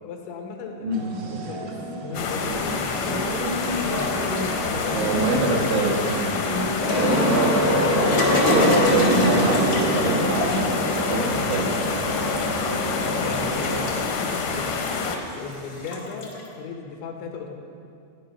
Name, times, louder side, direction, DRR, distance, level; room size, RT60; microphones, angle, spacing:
voice 1, 0.0-1.8 2.0-3.3 3.6-4.4 4.6-5.3 13.0-14.8 15.3-17.6, left 4 dB, 85° left, 2 dB, 3.8 m, -36 dB
no room for you up here, 0.9-10.6, right 1 dB, 65° right, 1.7 m, -32 dB
sound 1, 2.1-15.2, left 5 dB, 70° left, 2.1 m, -28 dB
sound 2, 3.3-16.4, left 1 dB, 50° left, 1.1 m, -25 dB
voice 2, 4.9-6.2 7.2-11.7, right 3 dB, 80° right, -1 dB, 4.1 m, -26 dB
15.5 x 10.5 x 5.8 m, 2.4 s
omnidirectional pair, 5.2 m